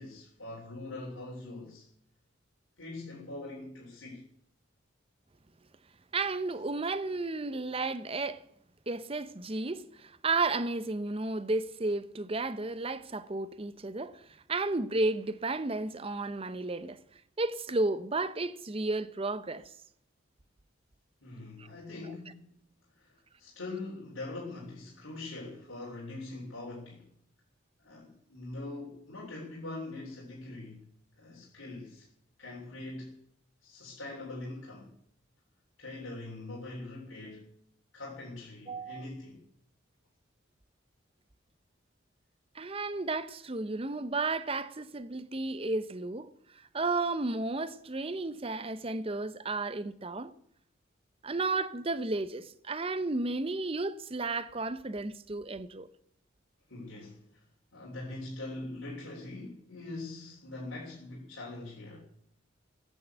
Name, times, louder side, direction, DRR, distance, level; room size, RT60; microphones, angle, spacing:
voice 1, 0.0-1.8 2.8-4.2 21.2-22.4 22.9-27.1 27.8-30.8 31.2-32.1 32.4-33.2 33.6-34.9 35.8-37.5 37.9-39.4 56.7-57.2 57.7-62.0, left 2 dB, 90° left, 3.5 m, -42 dB
voice 2, 6.1-8.4 8.9-17.0 17.4-19.7 21.6-21.7 38.7-39.1 42.5-50.3 51.2-55.9, right 3 dB, 30° right, 0.7 m, -33 dB
16.0 x 8.5 x 8.0 m
head